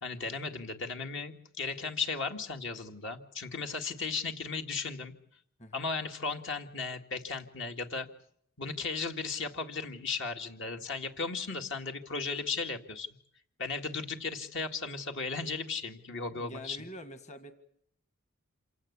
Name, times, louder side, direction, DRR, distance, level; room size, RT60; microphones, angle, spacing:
voice 1, 0.0-5.1 5.7-8.1 8.6-13.1 13.6-16.8, left 4 dB, 60° left, 4 dB, 2.0 m, -36 dB
voice 2, 16.3-17.5, equal, 35° left, 8 dB, 1.8 m, -45 dB
27.5 x 17.0 x 8.4 m, 0.68 s
head